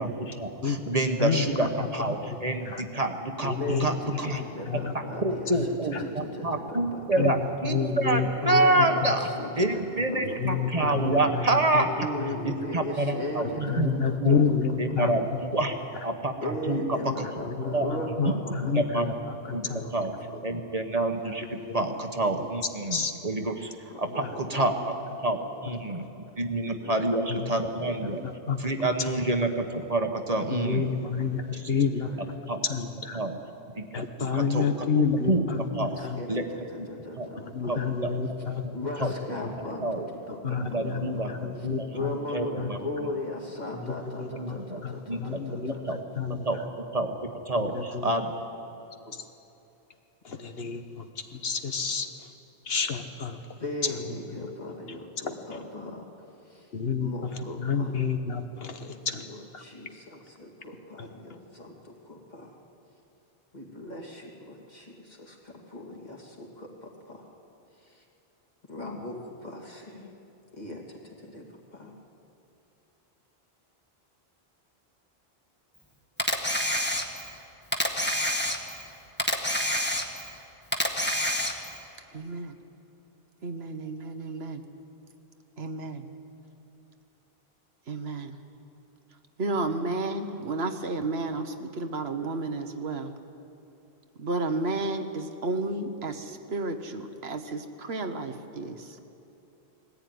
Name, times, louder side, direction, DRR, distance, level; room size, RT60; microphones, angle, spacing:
voice 1, 0.0-4.4 5.2-9.3 9.6-12.1 12.4-13.9 14.2-14.4 14.8-15.8 16.0-17.2 17.7-18.3 18.6-19.1 19.5-19.6 19.9-20.1 20.4-23.7 24.0-24.9 25.2-26.0 26.4-28.2 28.6-30.9 32.5-32.6 33.1-33.3 33.8-35.4 35.8-36.0 36.3-36.5 36.8-36.9 37.2-37.3 37.6-38.1 39.0-39.1 39.8-40.1 40.5-41.9 42.3-42.8 44.3-44.8 45.1-45.4 45.9-46.0 46.4-46.6 46.9-48.3, right 2 dB, 40° right, 5 dB, 1.2 m, -28 dB
voice 2, 0.6-1.5 2.0-2.4 2.6-2.8 3.4-4.9 5.5-5.7 5.9-6.0 7.2-9.1 10.2-11.5 11.7-11.8 12.2-12.5 13.4-15.4 17.0-17.2 17.5-19.9 21.2-22.0 22.4-22.5 22.9-23.1 24.1-24.3 27.3-27.6 28.0-28.7 29.0-29.1 30.5-32.1 32.6-33.2 33.9-36.2 37.4-38.6 39.0-39.1 39.4-39.5 40.4-42.2 42.6-42.7 43.8-46.5 47.6-48.1 49.1-49.2 50.2-52.3 52.6-54.0 54.3-54.5 54.9-55.0 56.7-59.3 59.5-59.6 61.0-61.1, left 6 dB, 70° left, 7 dB, 1.4 m, -30 dB
voice 3, 3.6-5.5 5.8-7.3 8.5-9.1 9.4-11.3 11.7-14.4 16.4-18.7 19.5-19.9 23.9-24.7 25.4-25.5 26.8-27.1 31.0-31.1 31.5-31.6 32.0-32.2 36.0-37.9 38.7-41.4 41.9-45.8 49.0-49.1 53.6-56.1 56.4-56.7 57.0-57.9 58.8-62.6 63.5-67.3 67.8-68.0 68.7-70.1 70.5-71.9, left 1 dB, 45° left, -1 dB, 2.7 m, -38 dB
Camera, 76.2-77.3 77.7-78.9 79.2-80.3 80.7-81.8, left 1 dB, 10° left, 1.4 m, -27 dB
voice 4, 82.1-82.6 83.4-84.6 85.6-86.1 87.9-88.4 89.4-93.1 94.2-99.0, right 2 dB, 75° right, 7 dB, 1.4 m, -32 dB
20.0 x 14.5 x 9.4 m, 2.8 s
omnidirectional pair, 1.0 m